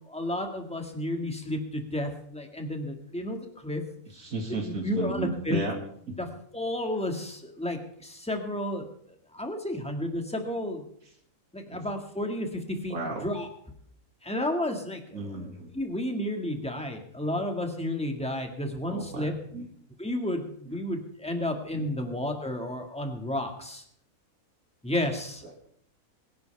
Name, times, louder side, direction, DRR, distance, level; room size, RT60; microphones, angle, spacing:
voice 1, 0.0-3.8 4.6-5.6 6.2-6.3 6.5-8.9 9.3-10.8 11.5-13.5 14.2-19.3 20.0-23.8 24.8-25.4, left 1 dB, 5° left, 3 dB, 1.9 m, -32 dB
voice 2, 4.2-5.7 6.1-6.2 11.7-11.8 12.9-13.3 15.1-15.7 18.8-19.7 21.7-21.9, right 3 dB, 75° right, 1 dB, 2.7 m, -34 dB
23.0 x 11.0 x 3.5 m, 0.65 s
omnidirectional pair, 1.5 m